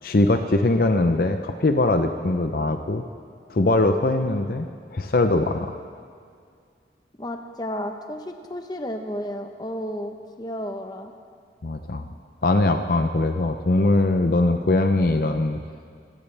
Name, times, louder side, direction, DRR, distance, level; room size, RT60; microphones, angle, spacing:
voice 1, 0.0-3.0 3.5-5.7 11.6-12.1 12.4-15.6, left 2 dB, 55° left, 7 dB, 0.6 m, -21 dB
voice 2, 7.2-11.1, equal, 20° left, 5 dB, 0.9 m, -32 dB
25.5 x 14.0 x 3.4 m, 2.2 s
head